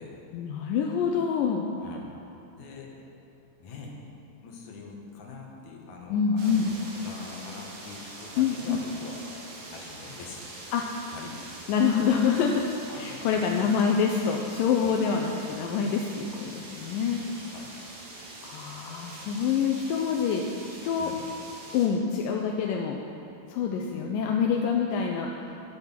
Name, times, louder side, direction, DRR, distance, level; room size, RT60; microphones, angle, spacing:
voice 1, 0.3-1.6 6.1-6.7 8.4-8.8 10.7-10.8 11.7-12.5 12.9-17.2 18.4-20.4 20.9-21.1 21.7-23.0 23.5-25.6, left 6 dB, 80° left, 1 dB, 2.4 m, -26 dB
voice 2, 1.7-2.2 2.4-2.9 3.6-4.0 4.4-10.5 11.1-11.4 12.1-12.2 12.9-13.7 14.8-15.0 17.3-17.8 21.0-21.2, left 4 dB, 60° left, -1 dB, 3.0 m, -44 dB
sound 1, 6.4-21.9, right 2 dB, 75° right, 3.7 m, -44 dB
12.5 x 12.0 x 5.8 m, 2.8 s
omnidirectional pair, 3.9 m